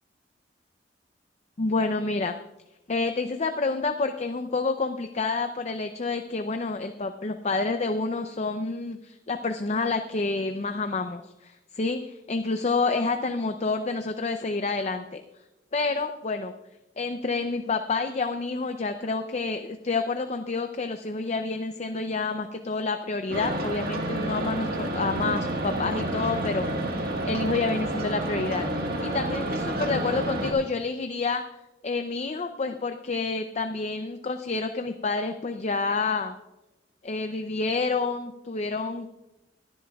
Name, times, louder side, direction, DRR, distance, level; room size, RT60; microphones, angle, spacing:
voice 1, 1.6-2.3 2.9-15.2 15.7-16.5 17.0-31.4 31.8-36.3 37.0-39.1, left 3 dB, 40° left, 7 dB, 0.5 m, -28 dB
sound 1, 23.3-30.5, right 1 dB, 55° right, 1.6 m, -29 dB
20.5 x 11.0 x 2.3 m, 0.96 s
head